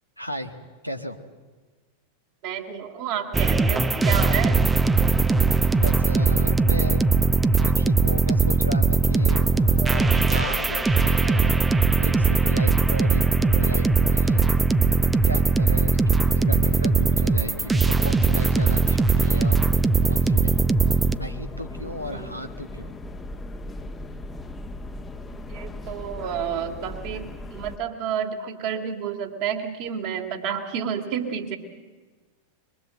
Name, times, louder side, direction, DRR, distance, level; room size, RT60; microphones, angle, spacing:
voice 1, 0.2-0.6 0.8-1.2 5.6-7.1 7.5-14.5 15.2-19.6 20.0-20.7 21.1-22.9, equal, 90° right, 6 dB, 1.6 m, -35 dB
voice 2, 2.4-4.6 9.8-10.1 22.1-22.2 25.5-31.6, right 8 dB, 45° right, 3 dB, 2.9 m, -30 dB
sound 1, 3.3-21.2, right 4 dB, 10° right, 0.8 m, -20 dB
sound 2, 9.1-27.8, left 1 dB, 15° left, 1.2 m, -37 dB
sound 3, 16.1-18.9, right 1 dB, 75° right, 1.5 m, -43 dB
23.0 x 22.5 x 7.8 m, 1.4 s
figure-of-eight pair, 90°, 0 cm